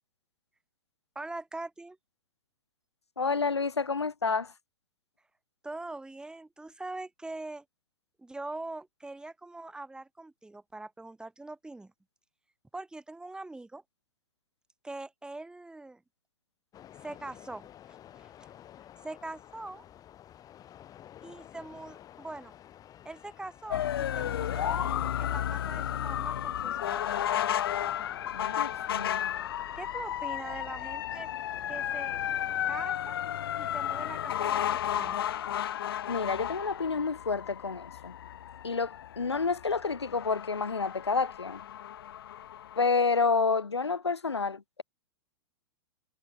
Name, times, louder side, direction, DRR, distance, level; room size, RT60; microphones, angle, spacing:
voice 1, 1.1-2.0 5.6-7.6 8.2-11.9 12.7-13.8 14.8-16.0 17.0-18.5 19.0-19.8 21.2-22.5 23.0-27.2 29.7-31.3 31.7-32.2 32.7-33.2 33.6-35.3, right 2 dB, 5° right, 3.4 m, -42 dB
voice 2, 3.2-4.5 28.3-29.3 36.1-38.1 38.6-41.6 42.8-44.8, left 4 dB, 85° left, 1.3 m, -29 dB
sound 1, 16.7-32.9, left 11 dB, 25° left, 3.6 m, -52 dB
sound 2, 23.7-42.9, left 11 dB, 60° left, 1.8 m, -33 dB
figure-of-eight pair, 100°, 14 cm